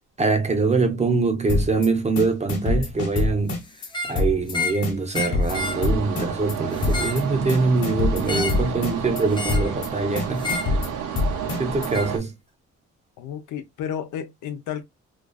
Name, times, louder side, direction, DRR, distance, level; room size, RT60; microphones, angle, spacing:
voice 1, 0.2-3.6 4.0-10.5 11.6-12.3, right 3 dB, 20° right, 0.7 m, -23 dB
sound 1, 1.5-1.9 2.2-3.9 4.2-4.5 4.8-6.5 6.8-7.2 7.5-9.2 9.5-9.9 10.2-11.9, left 3 dB, 55° left, 1.1 m, -25 dB
sound 2, 3.8-4.2 4.5-4.8 5.1-5.8 6.7-7.2 8.3-8.7 9.3-9.7 10.4-10.7 11.9-12.1, left 3 dB, 15° left, 0.4 m, -29 dB
sound 3, 5.5-12.2, right 8 dB, 80° right, 0.7 m, -31 dB
voice 2, 13.2-14.8, left 9 dB, 80° left, 0.6 m, -32 dB
2.5 x 2.3 x 2.2 m
cardioid pair, 90°, 30 cm